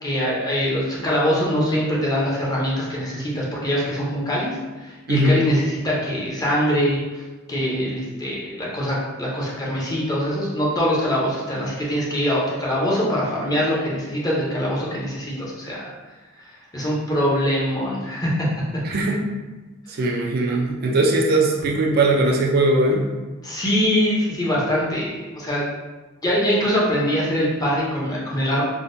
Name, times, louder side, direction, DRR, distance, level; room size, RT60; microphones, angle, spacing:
voice 1, 0.0-4.5 4.8-7.2 7.5-15.9 16.7-18.3 23.4-25.7 26.2-28.6, equal, 20° left, -5 dB, 0.6 m, -23 dB
voice 2, 18.8-19.2 20.0-23.1, right 2 dB, 50° right, 0 dB, 0.4 m, -19 dB
3.6 x 2.1 x 2.5 m, 1.2 s
head